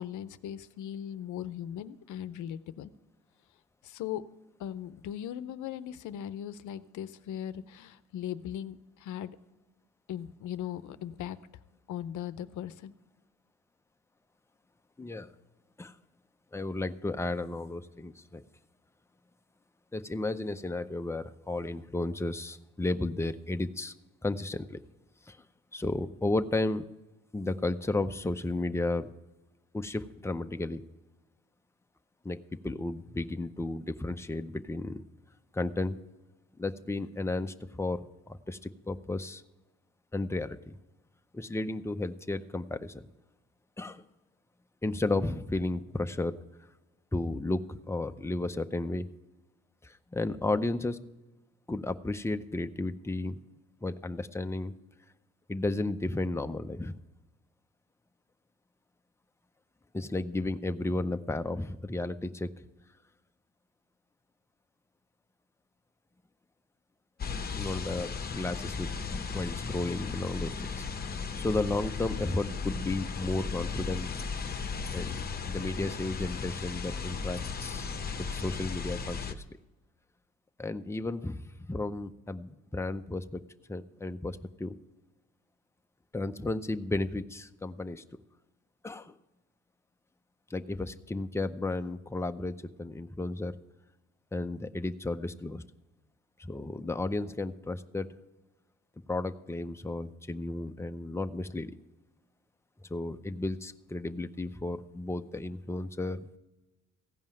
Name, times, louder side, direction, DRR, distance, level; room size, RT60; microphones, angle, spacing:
voice 1, 0.0-2.9 3.8-4.2 4.6-9.4 10.1-11.4 11.9-12.9, left 10 dB, 75° left, 14 dB, 0.7 m, -38 dB
voice 2, 15.0-15.3 15.8-15.9 16.5-18.4 19.9-23.9 24.2-24.8 25.3-25.4 25.7-26.9 27.3-29.1 29.7-30.8 32.2-35.0 35.5-36.0 36.6-39.4 40.1-40.8 41.3-43.1 43.8-44.0 44.8-46.4 47.1-49.1 49.8-51.0 51.7-53.3 53.8-54.7 55.5-57.0 59.9-62.5 67.5-68.9 69.3-70.9 71.4-74.2 74.9-77.9 78.3-79.4 80.6-83.4 83.7-84.8 86.1-88.0 88.8-89.1 90.5-93.6 94.3-95.6 96.4-98.1 99.1-101.7 102.9-106.4, left 2 dB, 10° left, 8 dB, 0.6 m, -33 dB
sound 1, 67.2-79.3, left 5 dB, 30° left, 0.9 m, -36 dB
15.5 x 5.5 x 9.1 m, 1.1 s
cardioid pair, 90°, 30 cm